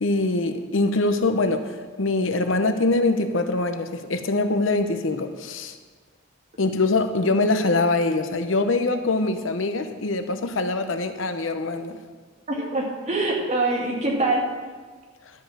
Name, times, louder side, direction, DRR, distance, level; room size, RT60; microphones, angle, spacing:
voice 1, 0.0-1.7 2.0-5.8 6.6-12.0, left 2 dB, 80° left, 8 dB, 0.8 m, -23 dB
voice 2, 12.5-14.5, right 2 dB, 35° right, -2 dB, 2.2 m, -24 dB
12.5 x 5.5 x 7.3 m, 1.4 s
head